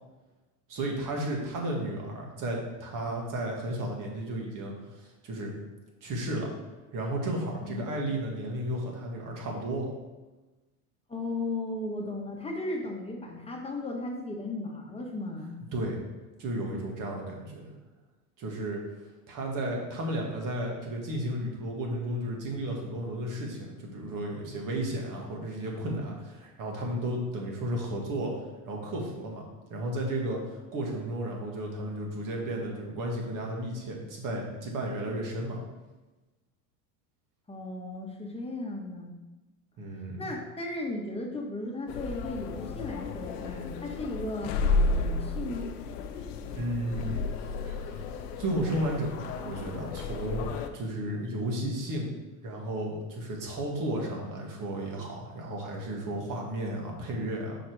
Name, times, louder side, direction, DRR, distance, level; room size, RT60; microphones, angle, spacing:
voice 1, 0.7-5.5 6.0-6.5 6.9-9.9 15.7-16.0 16.4-17.7 18.4-18.8 19.3-28.4 28.7-29.5 29.7-35.6 39.8-40.3 46.5-47.2 47.6-48.0 48.4-57.6, right 1 dB, 45° right, 0 dB, 2.0 m, -33 dB
voice 2, 11.1-15.6 37.5-39.2 40.2-45.7, left 2 dB, 15° left, 0 dB, 1.3 m, -36 dB
sound 1, 41.9-50.7, left 3 dB, 75° left, 0.8 m, -32 dB
5.7 x 5.3 x 4.7 m, 1.1 s
hypercardioid pair, 95°, 46 cm